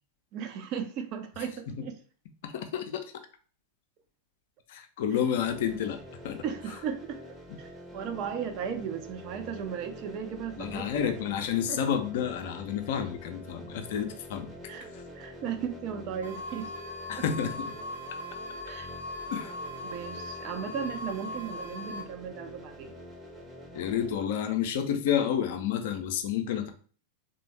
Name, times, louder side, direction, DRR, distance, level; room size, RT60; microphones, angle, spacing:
voice 1, 0.3-1.9 6.4-11.1 11.7-11.8 14.7-14.9 15.1-16.7 18.6-18.9 19.8-22.9, right 7 dB, 40° right, 7 dB, 0.5 m, -36 dB
voice 2, 1.4-1.8 2.4-3.0 4.7-6.0 6.2-6.4 10.6-14.5 17.1-17.7 19.3-19.5 23.7-26.7, left 8 dB, 55° left, 7 dB, 0.5 m, -30 dB
sound 1, 5.5-24.1, left 1 dB, 5° right, 0.7 m, -46 dB
sound 2, 16.2-22.0, left 2 dB, 65° right, 0.9 m, -40 dB
3.3 x 2.2 x 3.2 m, 0.41 s
figure-of-eight pair, 90°, 0 cm